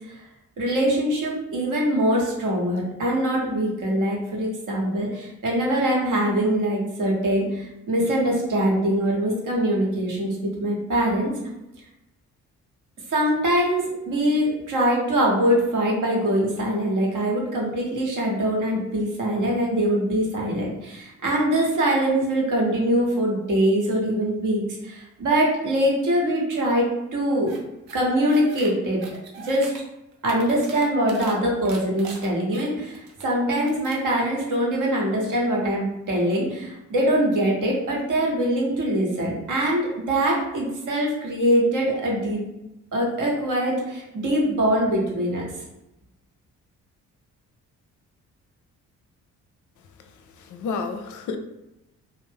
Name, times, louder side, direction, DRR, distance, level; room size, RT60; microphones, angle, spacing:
voice 1, 0.6-11.3 13.1-27.5 27.9-29.0 29.4-29.7 30.2-42.4 42.9-45.4, right 1 dB, 55° right, -2 dB, 1.0 m, -23 dB
sound 1, 27.5-27.6 27.9-28.7 29.0-29.8 30.1-31.3 31.6-33.2 33.6-34.0, right 5 dB, 75° right, 0.6 m, -42 dB
voice 2, 49.8-51.4, left 4 dB, 55° left, 7 dB, 0.5 m, -32 dB
2.5 x 2.0 x 3.5 m, 0.93 s
hypercardioid pair, 45°, 37 cm